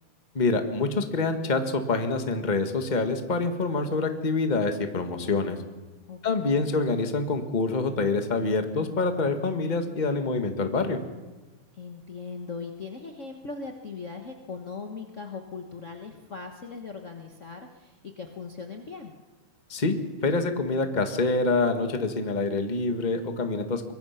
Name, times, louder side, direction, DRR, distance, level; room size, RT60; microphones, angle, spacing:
voice 1, 0.3-5.6 6.2-11.0 19.7-20.0 20.2-23.9, left 3 dB, 25° left, 6 dB, 0.9 m, -26 dB
voice 2, 6.1-6.7 11.7-19.1, left 4 dB, 55° left, 3 dB, 0.8 m, -39 dB
24.5 x 22.0 x 5.9 m, 1.2 s
omnidirectional pair, 3.6 m